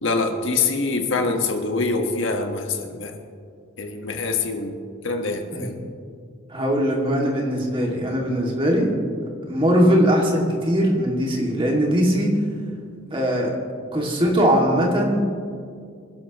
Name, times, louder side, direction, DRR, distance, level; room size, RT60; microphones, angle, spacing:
voice 1, 0.0-3.1 3.8-4.8 5.0-5.7, left 3 dB, 70° left, 4 dB, 1.5 m, -24 dB
voice 2, 6.5-8.9 9.5-12.3 13.1-13.5 13.9-15.3, equal, 25° right, -1 dB, 2.4 m, -20 dB
26.0 x 11.5 x 3.1 m, 2.2 s
head